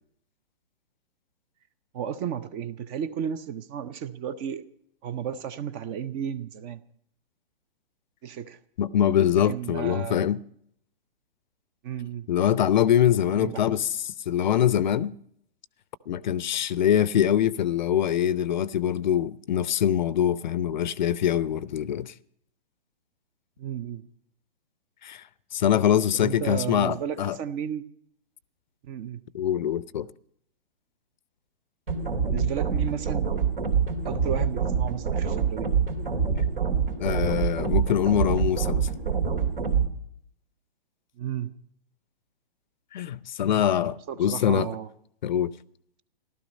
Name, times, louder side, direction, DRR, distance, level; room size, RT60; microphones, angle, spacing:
voice 1, 1.9-4.7 5.0-6.8 8.2-8.6 9.5-10.2 11.8-12.3 13.3-13.6 23.6-24.0 26.1-27.9 28.9-29.2 32.2-33.3 34.0-35.7 41.2-41.5 44.1-44.9, right 8 dB, 20° right, 0.6 m, -33 dB
voice 2, 8.8-10.4 12.3-15.2 16.1-22.1 25.0-25.2 25.5-27.4 29.3-30.1 37.0-38.9 42.9-44.7 45.2-45.5, left 10 dB, 50° left, 0.6 m, -24 dB
sound 1, 31.9-39.9, right 6 dB, 70° right, 2.8 m, -26 dB
15.0 x 13.0 x 5.2 m
figure-of-eight pair, 120°, 30 cm